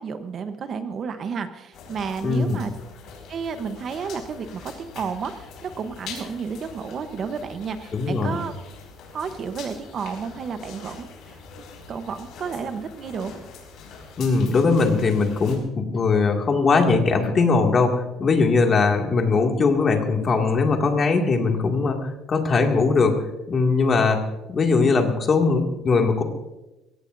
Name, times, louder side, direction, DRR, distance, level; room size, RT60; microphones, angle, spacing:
voice 1, 0.0-2.7 3.3-8.5 9.1-11.4 11.9-13.3, right 6 dB, 40° right, 9 dB, 1.0 m, -32 dB
sound 1, 1.7-15.6, left 5 dB, 65° left, 5.1 m, -43 dB
voice 2, 2.2-2.6 7.9-8.4 14.2-22.0 22.3-23.2 23.5-24.2 24.5-26.2, left 4 dB, 30° left, 2 dB, 2.2 m, -20 dB
23.5 x 17.0 x 2.7 m, 1.0 s
cardioid pair, 150°, 0 cm